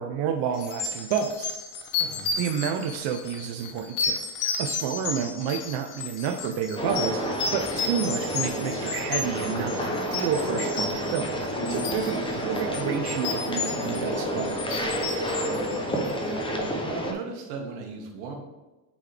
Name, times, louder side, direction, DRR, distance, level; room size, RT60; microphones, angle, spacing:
voice 1, 0.0-1.5 2.4-14.8, right 7 dB, 60° right, 4 dB, 0.7 m, -30 dB
sound 1, 0.6-16.4, left 5 dB, 75° left, 1.2 m, -33 dB
sound 2, 6.8-17.1, equal, 10° left, 0.6 m, -29 dB
voice 2, 15.4-16.1 16.7-18.4, right 4 dB, 85° right, 2 dB, 1.5 m, -38 dB
8.5 x 4.0 x 3.4 m, 1.1 s
cardioid pair, 150°, 48 cm